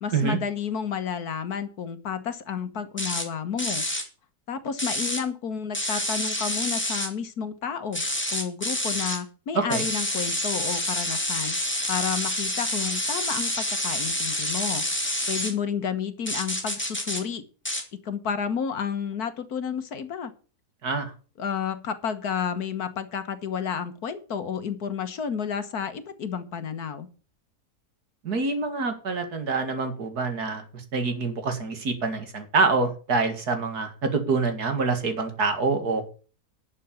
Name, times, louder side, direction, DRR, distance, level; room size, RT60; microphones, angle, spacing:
voice 1, 0.0-3.8 4.5-8.0 8.3-11.6 11.9-14.8 15.3-17.4 17.9-20.3 21.4-27.1, left 7 dB, 70° left, 10 dB, 1.8 m, -31 dB
sound 1, 3.0-3.3 3.6-4.0 4.8-5.2 5.7-7.1 7.9-9.2 9.7-15.5 16.3-17.2 17.6-17.8, left 1 dB, 5° left, 2.4 m, -28 dB
voice 2, 9.5-9.8 20.8-21.1 28.2-36.0, right 4 dB, 75° right, 7 dB, 2.6 m, -26 dB
11.5 x 6.9 x 7.0 m, 0.37 s
omnidirectional pair, 1.7 m